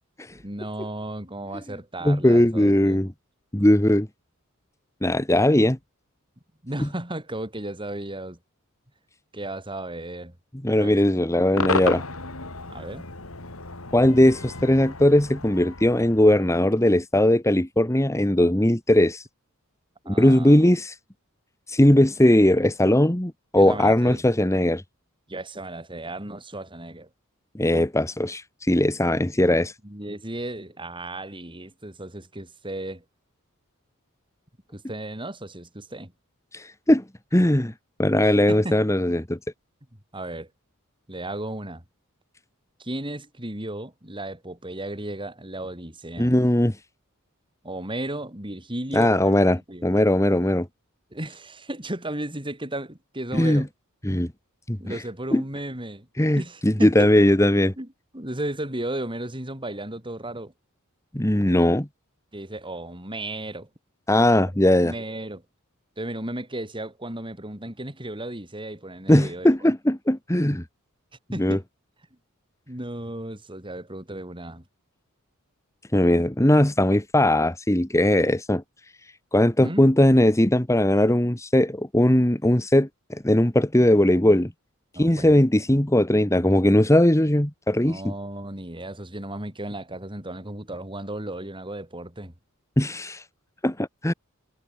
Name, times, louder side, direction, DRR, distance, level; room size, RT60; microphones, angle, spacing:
voice 1, 0.4-3.0 6.6-8.4 9.3-10.4 10.8-11.0 12.7-13.1 20.1-20.6 23.6-24.2 25.3-27.1 29.8-33.0 34.7-36.1 38.2-38.8 40.1-40.5 41.1-41.8 42.8-46.3 47.6-49.3 49.7-49.9 51.1-53.7 54.8-56.1 56.4-57.1 57.8-57.9 58.1-60.5 62.3-63.7 64.8-65.4 66.0-69.5 71.3-71.6 72.7-74.6 79.6-79.8 84.9-85.4 87.8-92.3, right 1 dB, 25° right, 5.6 m, -34 dB
voice 2, 2.0-3.1 3.5-4.1 5.0-5.8 6.8-6.9 10.6-12.0 13.9-19.3 20.1-21.0 21.7-24.8 27.5-29.7 36.5-37.0 37.3-37.7 38.0-39.4 46.2-46.8 48.9-50.7 53.3-53.6 54.0-54.3 54.7-55.0 55.3-55.4 56.2-57.7 61.1-61.9 64.1-64.9 69.1-70.6 71.4-71.6 75.9-78.6 79.3-84.5 85.0-88.1 92.8-93.2 93.6-94.1, left 1 dB, 15° left, 1.5 m, -19 dB
Cheering / Crowd / Fireworks, 11.6-16.8, left 3 dB, 70° left, 3.7 m, -32 dB
head